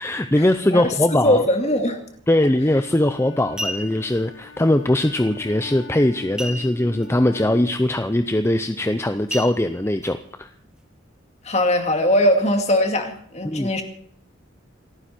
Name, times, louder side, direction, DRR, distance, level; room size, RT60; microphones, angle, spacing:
voice 1, 0.0-1.4 2.3-10.5 13.4-13.7, left 1 dB, 15° left, 8 dB, 0.6 m, -21 dB
voice 2, 0.7-2.0 11.4-13.8, left 1 dB, 35° left, 5 dB, 2.3 m, -20 dB
Wind instrument woodwind instrument, 2.6-7.8, left 3 dB, 80° left, 5.3 m, -41 dB
sound 1, 2.7-2.9 3.4-4.2 6.4-7.1 7.4-7.5 8.0-8.2 9.3-10.1 10.7-10.8, equal, 5° right, 1.0 m, -32 dB
28.5 x 9.7 x 4.4 m, 0.65 s
head